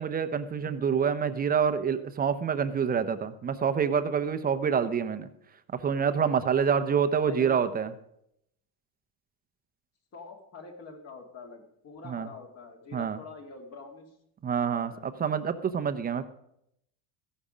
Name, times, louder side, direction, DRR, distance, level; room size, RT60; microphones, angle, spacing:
voice 1, 0.0-5.3 5.7-7.9 12.0-12.3 12.9-13.2 14.4-16.2, right 7 dB, 20° right, 10 dB, 0.7 m, -27 dB
voice 2, 6.9-7.6 10.1-14.1 14.6-15.0, left 4 dB, 35° left, 3 dB, 2.2 m, -45 dB
15.0 x 11.0 x 5.0 m, 0.77 s
cardioid pair, 155°, 42 cm